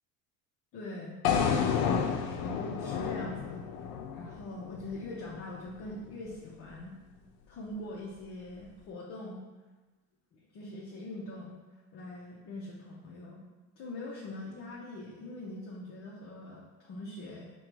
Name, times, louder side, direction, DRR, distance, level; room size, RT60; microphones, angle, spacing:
voice 1, 0.7-1.2 2.2-3.7 4.1-6.9 7.5-9.4 10.3-11.6 11.9-13.4 13.8-17.5, left 2 dB, 40° left, -4 dB, 0.7 m, -42 dB
sound 1, 1.2-5.4, left 7 dB, 85° left, 0.6 m, -30 dB
5.3 x 2.2 x 4.5 m, 1.2 s
cardioid pair, 160°, 36 cm